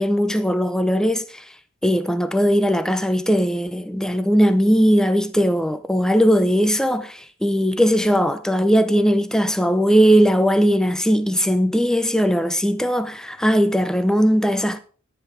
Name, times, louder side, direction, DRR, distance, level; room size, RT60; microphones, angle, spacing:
voice 1, 0.0-1.4 1.8-14.8, equal, 5° left, 0.6 m, -19 dB
11.5 x 9.9 x 4.6 m
head